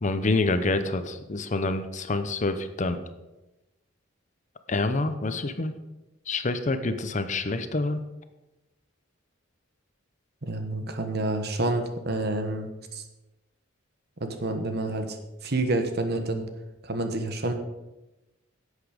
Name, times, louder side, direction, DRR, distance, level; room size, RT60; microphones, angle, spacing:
voice 1, 0.0-3.0 4.7-5.7 6.3-8.0, left 2 dB, 40° left, 10 dB, 0.7 m, -27 dB
voice 2, 10.4-13.0 14.2-15.2 15.4-16.4 16.8-17.5, right 2 dB, 55° right, 6 dB, 1.3 m, -28 dB
11.0 x 8.2 x 5.1 m, 1.0 s
head